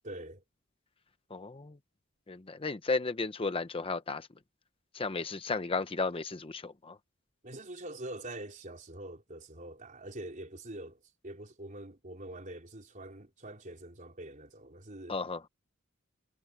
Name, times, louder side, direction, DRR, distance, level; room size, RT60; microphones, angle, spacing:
voice 1, 0.0-0.4 7.4-15.2, right 1 dB, 40° right, 4.3 m, -44 dB
voice 2, 1.3-1.8 2.3-4.3 4.9-7.0 15.1-15.5, left 3 dB, 25° left, 0.7 m, -34 dB
head